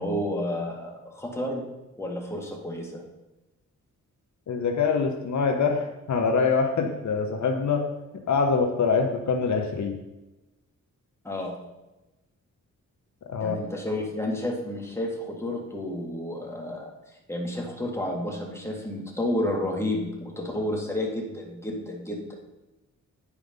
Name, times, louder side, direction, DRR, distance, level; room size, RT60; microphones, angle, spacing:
voice 1, 0.0-1.7 2.0-3.0 11.2-11.6 13.4-16.9 17.3-22.3, left 1 dB, 10° left, -1 dB, 1.9 m, -31 dB
voice 2, 4.5-7.8 8.3-10.0 13.3-13.6, left 5 dB, 65° left, 4 dB, 1.0 m, -24 dB
10.0 x 4.9 x 5.3 m, 1.0 s
cardioid pair, 95°, 32 cm